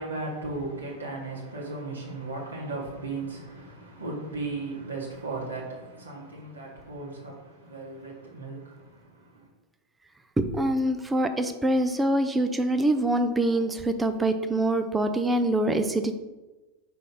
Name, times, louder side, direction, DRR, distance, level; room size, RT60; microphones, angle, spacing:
voice 1, 0.0-9.5, right 3 dB, 75° right, 1.4 m, -36 dB
voice 2, 10.4-16.2, right 1 dB, 10° right, 0.5 m, -25 dB
5.2 x 3.4 x 5.5 m
figure-of-eight pair, 90°, 0 cm